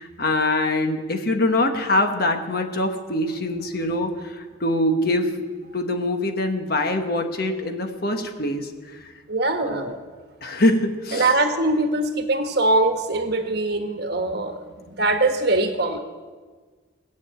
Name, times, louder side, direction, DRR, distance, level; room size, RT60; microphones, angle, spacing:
voice 1, 0.0-5.4 5.7-9.1 9.6-9.9 10.4-11.3, left 1 dB, 50° left, 5 dB, 1.3 m, -24 dB
voice 2, 9.3-10.0 11.1-16.0, right 2 dB, 55° right, 5 dB, 1.3 m, -22 dB
18.5 x 6.9 x 8.8 m, 1.4 s
head